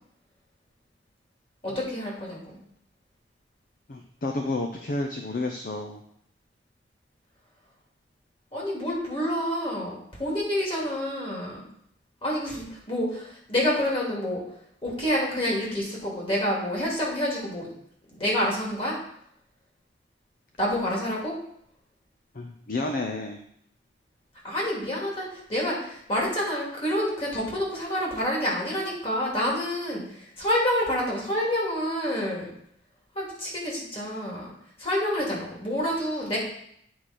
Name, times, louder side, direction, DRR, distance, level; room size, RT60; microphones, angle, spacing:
voice 1, 1.6-2.6 8.5-11.6 12.2-14.4 14.8-17.7 18.1-19.0 20.6-21.4 24.4-32.5 33.1-34.5 34.8-36.4, equal, 30° left, -4 dB, 2.5 m, -28 dB
voice 2, 3.9-6.0 22.3-23.4, left 2 dB, 50° left, 4 dB, 0.6 m, -31 dB
9.2 x 4.8 x 4.3 m, 0.70 s
head